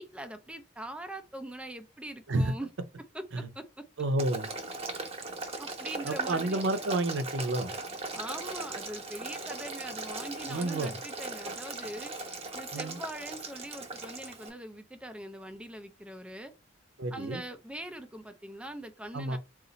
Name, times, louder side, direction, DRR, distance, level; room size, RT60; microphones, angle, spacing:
voice 1, 0.0-2.7 3.1-3.6 5.6-6.6 8.1-12.1 12.5-16.5 17.1-19.4, right 1 dB, 5° right, 0.4 m, -42 dB
voice 2, 4.0-4.5 6.0-7.7 10.5-11.0 12.7-13.0 17.0-17.4 19.1-19.4, right 2 dB, 85° right, 0.6 m, -30 dB
Boiling, 4.2-14.5, right 3 dB, 35° right, 0.9 m, -39 dB
3.9 x 2.4 x 4.0 m
head